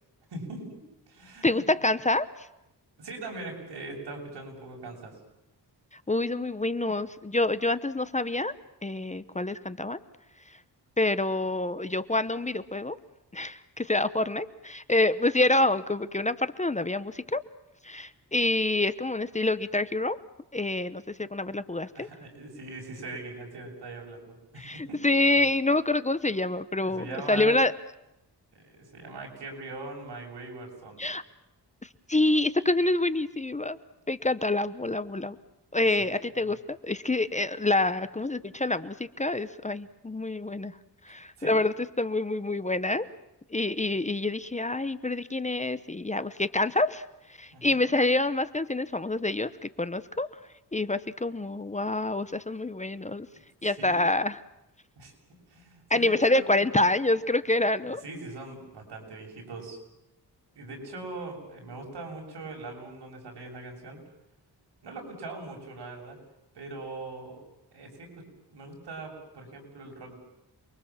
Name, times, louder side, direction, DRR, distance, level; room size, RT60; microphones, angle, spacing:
voice 1, 0.3-0.8 1.1-1.6 3.0-5.1 21.9-25.0 26.8-27.6 28.5-31.0 36.0-36.1 41.4-41.5 47.5-47.9 53.2-54.0 55.0-55.1 55.5-57.0 58.0-59.8 60.6-64.0 64.8-66.2 66.5-67.4 67.7-68.1 68.5-70.2, right 2 dB, 85° right, 1 dB, 7.5 m, -41 dB
voice 2, 1.4-2.3 6.1-8.5 8.8-10.0 11.0-13.0 13.3-17.4 17.8-20.2 20.5-22.1 24.6-27.7 31.0-31.2 32.1-33.8 34.1-35.4 35.7-40.7 41.0-43.1 43.5-47.0 47.4-50.3 50.7-53.3 53.6-54.4 55.9-58.0, left 2 dB, 15° left, 13 dB, 0.8 m, -27 dB
28.5 x 22.5 x 7.3 m, 0.89 s
wide cardioid pair, 115°, 40 cm